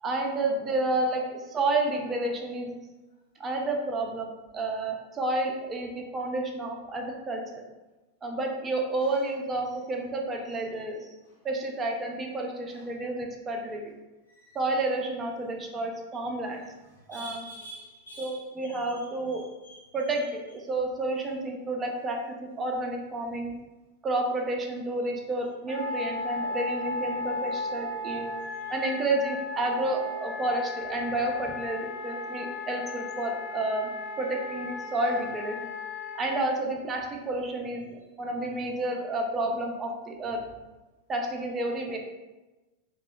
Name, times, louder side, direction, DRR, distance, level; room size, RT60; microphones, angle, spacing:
voice 1, 0.0-2.8 3.4-7.6 8.2-11.1 11.4-13.9 14.5-16.6 17.1-17.4 18.2-19.4 19.9-20.4 20.7-23.6 24.0-28.3 28.7-33.9 34.2-35.6 36.1-40.4 41.1-42.0, right 2 dB, 20° right, 1 dB, 0.4 m, -30 dB
voice 2, 9.0-9.4 10.7-10.8 11.2-11.5 12.7-12.9 14.3-14.6 16.6-20.2 21.2-21.3 28.4-28.9 34.8-35.0 36.0-36.2 38.0-38.1, right 2 dB, 80° left, -7 dB, 0.9 m, -49 dB
Wind instrument woodwind instrument, 25.7-36.5, left 2 dB, 35° left, 0.7 m, -35 dB
2.7 x 2.0 x 2.3 m, 1.1 s
figure-of-eight pair, 90°, 0 cm